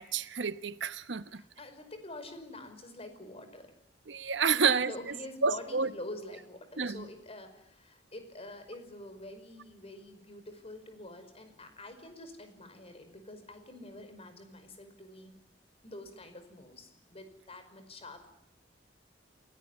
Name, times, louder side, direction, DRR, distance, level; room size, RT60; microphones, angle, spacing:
voice 1, 0.0-1.4 4.1-4.9 5.4-5.9 6.8-7.1, right 5 dB, 75° right, 1.0 m, -29 dB
voice 2, 1.3-3.7 4.5-15.4 15.8-18.3, left 1 dB, 35° left, 5.2 m, -46 dB
28.5 x 18.0 x 10.0 m
head